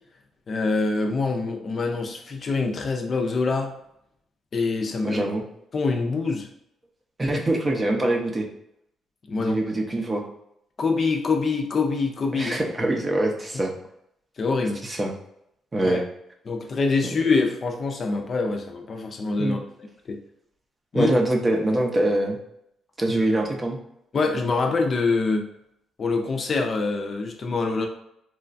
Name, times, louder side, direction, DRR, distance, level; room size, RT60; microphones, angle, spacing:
voice 1, 0.5-3.8 4.5-5.2 5.7-6.5 7.2-7.4 9.3-9.6 10.8-12.6 14.4-14.8 15.8-16.0 16.5-19.6 20.1-20.2 20.9-21.1 23.1-23.2 24.1-25.4 26.0-27.9, left 4 dB, 45° left, 3 dB, 0.4 m, -25 dB
voice 2, 5.0-5.4 7.2-8.5 9.4-10.3 12.3-13.7 14.8-15.1 15.7-16.0 19.4-19.6 20.9-22.4 23.0-23.8, right 1 dB, 25° right, 2 dB, 0.5 m, -24 dB
3.0 x 2.2 x 2.5 m, 0.77 s
cardioid pair, 90°, 0 cm